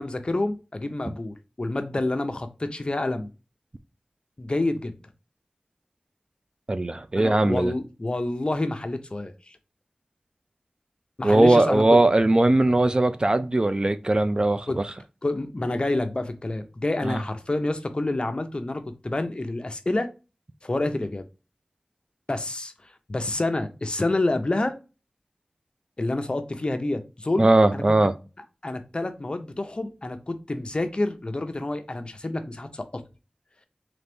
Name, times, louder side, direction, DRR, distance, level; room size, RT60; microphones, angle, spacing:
voice 1, 0.0-3.3 4.4-4.9 7.1-9.6 11.2-12.0 14.7-14.9 15.2-20.1 20.6-21.2 22.3-24.8 26.0-27.8 28.6-33.0, left 2 dB, 40° left, 0.6 m, -28 dB
voice 2, 6.7-7.7 11.2-14.8 17.0-17.2 27.4-28.1, right 2 dB, 35° right, 0.4 m, -20 dB
4.0 x 3.3 x 3.4 m
wide cardioid pair, 75°, 3 cm